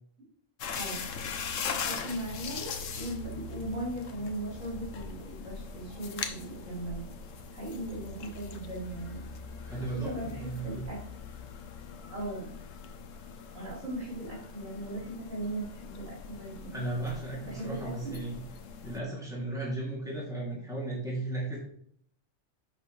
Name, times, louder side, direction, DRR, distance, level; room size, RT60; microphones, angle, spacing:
sound 1, 0.6-19.0, left 6 dB, 75° left, 1.2 m, -41 dB
voice 1, 1.8-7.0 7.5-9.2 9.7-11.0 12.1-12.5 13.5-16.9 17.4-18.1, right 1 dB, 70° right, -6 dB, 4.5 m, -38 dB
voice 2, 9.6-10.9 16.7-18.4 18.8-21.6, right 2 dB, 5° right, -5 dB, 2.7 m, -35 dB
10.0 x 6.2 x 3.3 m, 0.64 s
omnidirectional pair, 1.3 m